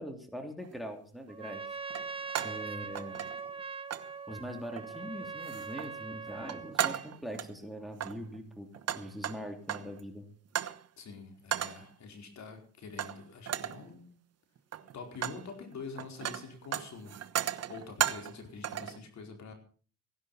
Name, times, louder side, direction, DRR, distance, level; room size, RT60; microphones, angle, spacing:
voice 1, 0.0-1.8 2.4-3.2 4.3-8.7 8.9-10.3, equal, ahead, 5 dB, 3.1 m, -42 dB
sound 1, 0.6-0.8 1.9-2.7 3.0-3.6 3.9-4.1 4.7-5.1 5.4-5.9 6.3-7.5 7.9-10.0 10.6-10.8 11.5-11.9 13.0-13.2 13.5-13.9 14.6-15.5 15.7-18.4 18.6-19.0, right 10 dB, 55° right, 1.2 m, -35 dB
Trumpet, 1.3-6.8, right 5 dB, 20° right, 1.2 m, -41 dB
voice 2, 11.0-14.1 14.9-17.2 17.7-19.5, left 4 dB, 65° left, 4 dB, 4.7 m, -46 dB
16.5 x 11.0 x 5.7 m, 0.41 s
cardioid pair, 90°, 30 cm